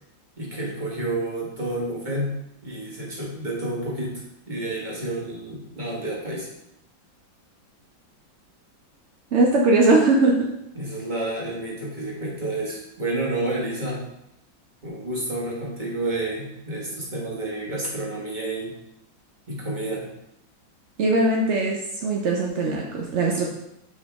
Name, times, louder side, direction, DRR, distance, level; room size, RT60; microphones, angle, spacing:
voice 1, 0.4-2.3 2.6-4.1 4.5-6.5 10.7-14.0 14.8-18.7 19.5-20.0, right 2 dB, 25° right, -4 dB, 1.8 m, -30 dB
voice 2, 9.3-10.5 21.0-23.5, right 2 dB, 65° right, 0 dB, 0.7 m, -20 dB
7.0 x 5.1 x 3.5 m, 0.82 s
omnidirectional pair, 2.1 m